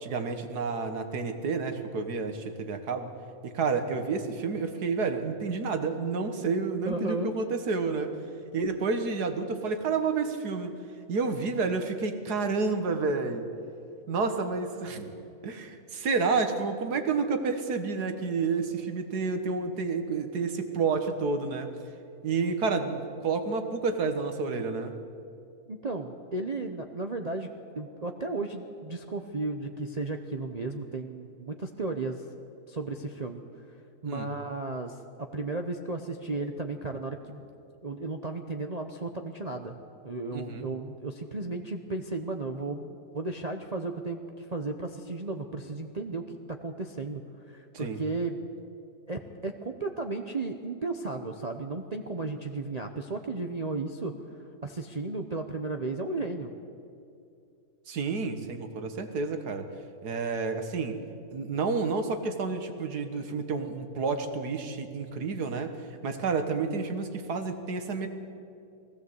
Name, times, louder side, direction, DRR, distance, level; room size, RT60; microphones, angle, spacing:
voice 1, 0.0-3.1 3.4-8.1 8.5-10.8 11.1-13.5 14.1-15.1 15.4-21.7 22.2-24.9 34.0-34.3 40.3-40.7 47.7-48.0 57.9-59.7 60.0-61.0 61.3-65.7 66.0-68.1, right 4 dB, 85° right, 7 dB, 2.0 m, -30 dB
voice 2, 6.9-7.3 25.7-27.5 27.7-32.2 32.7-33.4 34.0-35.0 35.3-37.5 37.8-39.8 40.0-47.2 47.5-48.4 49.1-54.2 54.6-56.5, right 3 dB, 30° right, 4 dB, 0.8 m, -34 dB
20.0 x 16.5 x 7.9 m, 2.6 s
omnidirectional pair, 1.6 m